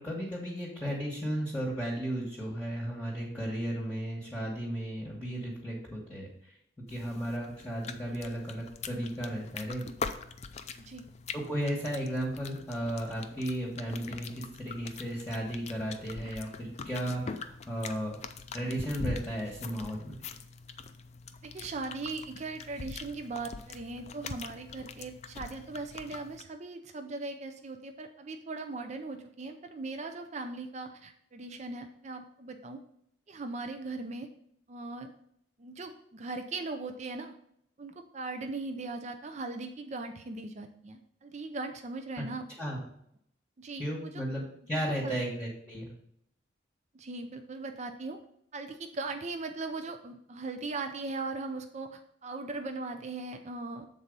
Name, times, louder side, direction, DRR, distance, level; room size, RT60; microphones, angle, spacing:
voice 1, 0.0-6.5 6.9-9.9 11.3-18.1 18.5-20.2 42.6-42.8 43.7-45.9, equal, 10° left, -5 dB, 1.2 m, -35 dB
sound 1, 6.9-26.4, left 5 dB, 35° left, 0.4 m, -43 dB
voice 2, 21.4-32.8 33.3-34.3 34.7-35.1 35.6-37.3 37.8-42.5 43.6-44.2 44.7-45.2 46.9-48.2 48.5-53.9, right 3 dB, 35° right, 6 dB, 0.5 m, -39 dB
7.4 x 4.1 x 5.2 m, 0.71 s
head